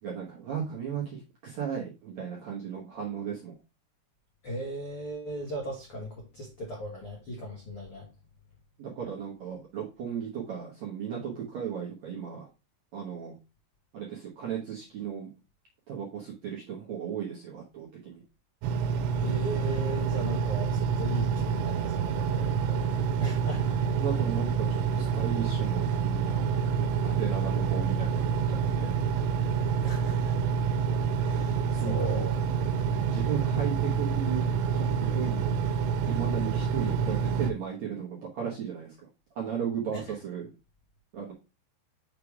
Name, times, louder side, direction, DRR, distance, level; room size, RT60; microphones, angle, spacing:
voice 1, 0.0-3.6 8.8-12.5 12.9-13.4 13.9-15.3 15.9-18.2 24.0-26.4 26.8-28.9 31.7-32.2 33.1-34.4 34.7-35.6 36.1-38.9 39.3-40.5 41.1-41.3, right 8 dB, 70° right, 1.7 m, -35 dB
voice 2, 4.4-8.1 19.2-23.8 29.8-30.3 31.2-32.4, right 1 dB, 75° left, 1.2 m, -37 dB
Engine, 18.6-37.5, right 6 dB, 90° right, 2.9 m, -27 dB
6.7 x 3.4 x 4.7 m
omnidirectional pair, 4.9 m